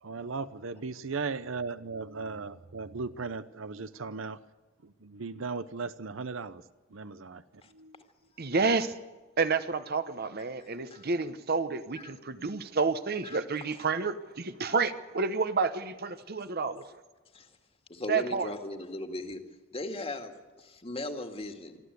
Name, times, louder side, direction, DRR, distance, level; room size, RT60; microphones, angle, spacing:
voice 1, 0.0-4.4 4.8-6.6 6.9-7.4 7.7-7.9, right 4 dB, 80° right, 14 dB, 0.8 m, -37 dB
voice 2, 8.4-8.9 9.4-16.8 18.1-18.5, right 4 dB, 50° right, 11 dB, 1.0 m, -29 dB
voice 3, 17.9-19.4 19.7-21.8, left 1 dB, 30° left, 6 dB, 2.1 m, -38 dB
24.5 x 14.0 x 8.2 m, 1.3 s
head